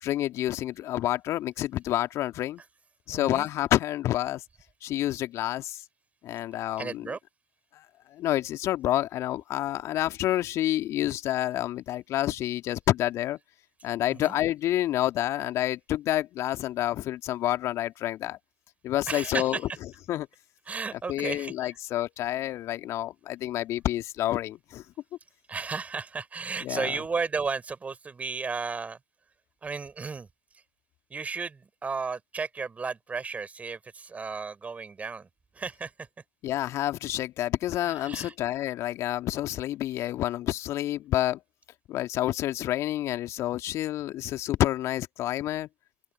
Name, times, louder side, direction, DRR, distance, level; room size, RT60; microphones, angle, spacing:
voice 1, 0.0-2.6 3.1-4.4 4.8-5.8 6.2-7.0 7.7-7.9 8.1-13.4 13.8-18.4 18.8-19.6 20.1-20.3 21.1-24.8 26.6-26.9 36.4-41.4 41.9-45.7, left 14 dB, 45° left, 2.0 m, -28 dB
voice 2, 3.1-3.5 6.8-7.2 14.1-14.4 19.0-19.8 20.6-21.8 25.5-29.0 29.6-30.3 30.5-30.6 31.1-35.3 35.5-36.1 37.8-38.3, right 4 dB, 20° right, 4.4 m, -34 dB
figure-of-eight pair, 70°, 7 cm